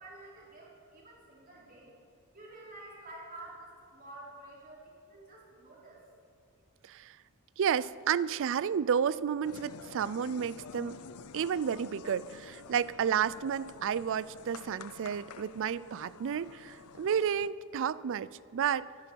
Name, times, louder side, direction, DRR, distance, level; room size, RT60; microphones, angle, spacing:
voice 1, 0.0-1.9 2.3-6.0, right 2 dB, 40° right, -5 dB, 3.9 m, -50 dB
voice 2, 6.8-7.2 7.6-11.0 11.3-18.9, right 8 dB, 60° right, 19 dB, 0.4 m, -31 dB
sound 1, 9.4-17.5, left 6 dB, 80° left, 0.6 m, -49 dB
23.0 x 10.5 x 4.6 m, 2.6 s
head